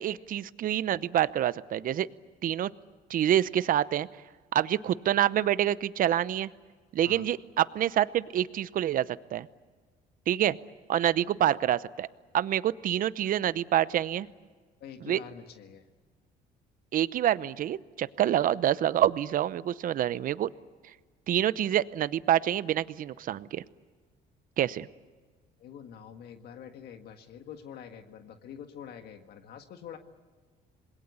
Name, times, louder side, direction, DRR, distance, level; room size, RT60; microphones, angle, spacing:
voice 1, 0.0-2.1 2.4-2.7 3.1-4.1 4.5-6.5 6.9-9.5 10.3-10.6 10.9-12.1 12.3-14.3 15.0-15.2 16.9-20.5 21.3-23.6 24.6-24.9, right 11 dB, 55° right, 17 dB, 0.8 m, -27 dB
voice 2, 14.8-15.8 25.6-30.0, left 8 dB, 70° left, 6 dB, 1.8 m, -46 dB
27.0 x 21.0 x 8.3 m, 1.5 s
cardioid pair, 110°, 17 cm